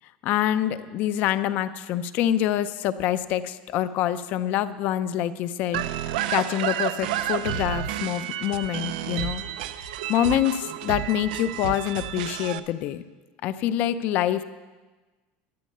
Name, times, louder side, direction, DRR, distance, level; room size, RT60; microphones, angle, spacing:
voice 1, 0.2-5.8 6.3-9.4 9.8-13.0 13.4-14.4, left 11 dB, 40° left, 13 dB, 0.5 m, -26 dB
sound 1, 5.7-12.6, right 11 dB, 85° right, 0.6 m, -30 dB
12.5 x 10.0 x 6.6 m, 1.3 s
cardioid pair, 180°, 4 cm